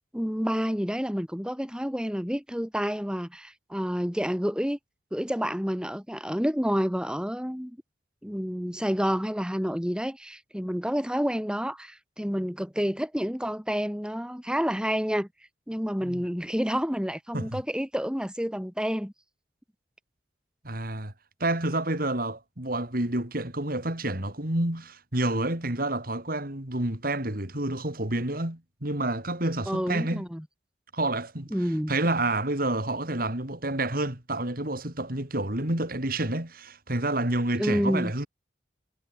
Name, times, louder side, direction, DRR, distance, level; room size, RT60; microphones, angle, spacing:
voice 1, 0.1-4.8 5.1-7.8 8.2-15.3 15.7-19.1 29.7-30.4 31.5-31.9 37.6-38.1, equal, 5° right, 3.7 m, -29 dB
voice 2, 20.6-21.1 21.4-30.2 30.9-31.5 31.9-38.3, right 2 dB, 55° right, 3.8 m, -29 dB
head